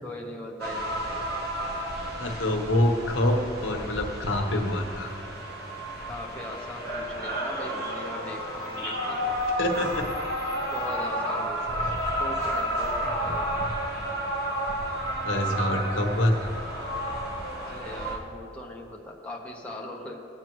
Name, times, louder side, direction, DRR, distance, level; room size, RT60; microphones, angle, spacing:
voice 1, 0.0-1.2 6.0-9.3 10.6-13.6 17.6-20.2, left 1 dB, 5° left, -2 dB, 1.0 m, -40 dB
sound 1, 0.6-18.2, equal, 55° right, 1.6 m, -31 dB
voice 2, 2.2-5.1 9.6-10.0 15.2-16.5, left 1 dB, 75° left, 2 dB, 1.2 m, -26 dB
17.5 x 8.9 x 3.1 m, 2.4 s
head